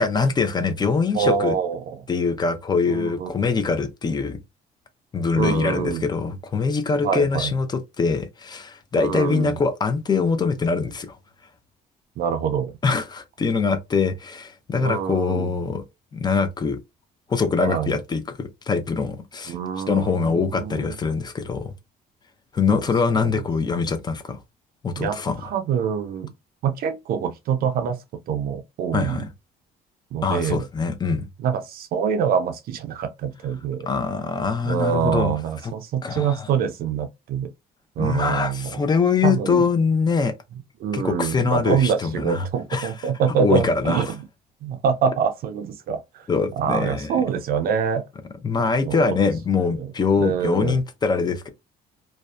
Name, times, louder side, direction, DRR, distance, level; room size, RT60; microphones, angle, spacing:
voice 1, 0.0-1.5 2.1-4.4 5.1-11.2 12.8-15.8 16.1-16.8 17.3-19.5 19.9-21.7 22.5-24.4 24.8-25.4 28.9-29.3 30.2-31.3 33.9-35.4 35.6-35.7 36.0-36.5 38.0-40.3 40.9-42.4 42.7-42.9 43.4-44.1 46.3-47.1 48.4-51.5, left 5 dB, 25° left, 0.4 m, -23 dB
voice 2, 1.1-2.0 2.9-3.3 5.4-6.1 7.0-7.5 9.0-9.6 12.2-12.7 14.8-15.5 17.6-18.0 19.5-21.0 22.7-22.8 23.2-23.4 25.0-26.3 26.6-28.0 28.3-29.2 30.1-30.7 31.4-33.9 34.6-37.5 38.0-38.8 39.2-39.6 40.8-44.1 44.6-46.3 46.6-48.0 48.6-49.0 49.6-49.9 50.2-50.8, right 7 dB, 60° right, 0.4 m, -25 dB
2.6 x 2.1 x 2.3 m
cardioid pair, 110°, 17 cm